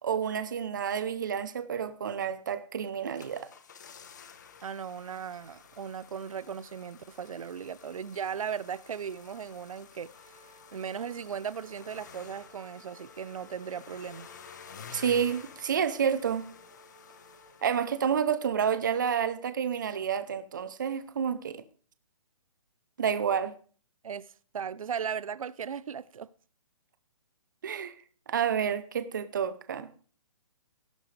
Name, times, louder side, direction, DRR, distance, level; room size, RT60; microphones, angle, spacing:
voice 1, 0.0-3.5 14.9-16.5 17.6-21.6 23.0-23.5 27.6-27.9 28.3-29.9, right 7 dB, 35° right, 0.7 m, -29 dB
sound 1, 2.9-18.4 18.6-18.7, left 7 dB, 30° left, 1.0 m, -52 dB
voice 2, 4.6-10.5 10.7-14.3 24.0-26.3, right 7 dB, 70° right, 0.7 m, -37 dB
sound 2, 10.0-18.5, equal, 60° left, 4.4 m, -58 dB
16.5 x 11.5 x 3.3 m
hypercardioid pair, 180°, 18 cm